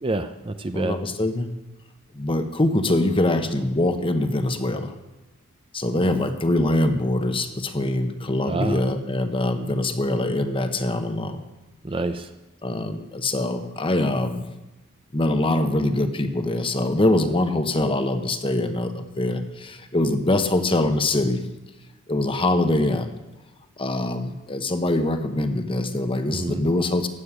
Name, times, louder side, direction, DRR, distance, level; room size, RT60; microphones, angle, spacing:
voice 1, 0.0-1.0 8.5-8.8 11.8-12.3 26.3-26.6, right 2 dB, 25° right, 9 dB, 0.6 m, -27 dB
voice 2, 0.7-1.5 2.1-4.9 5.7-11.4 12.6-14.5 15.1-21.4 22.1-23.1 23.8-27.1, left 1 dB, 25° left, 8 dB, 1.0 m, -23 dB
15.0 x 6.6 x 9.8 m, 1.0 s
head